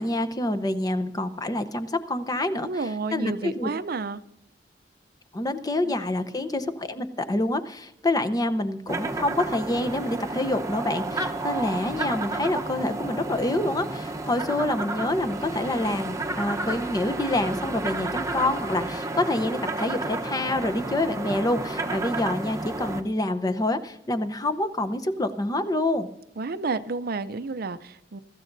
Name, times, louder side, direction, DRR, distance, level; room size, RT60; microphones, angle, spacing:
voice 1, 0.0-2.7 3.1-3.7 5.3-26.1, left 1 dB, 20° left, 11 dB, 0.7 m, -27 dB
voice 2, 2.6-4.2 5.8-5.9 26.4-28.2, right 3 dB, 55° right, 13 dB, 0.5 m, -31 dB
sound 1, 8.9-23.0, right 2 dB, 15° right, 0.9 m, -31 dB
23.0 x 13.5 x 2.6 m, 0.81 s
head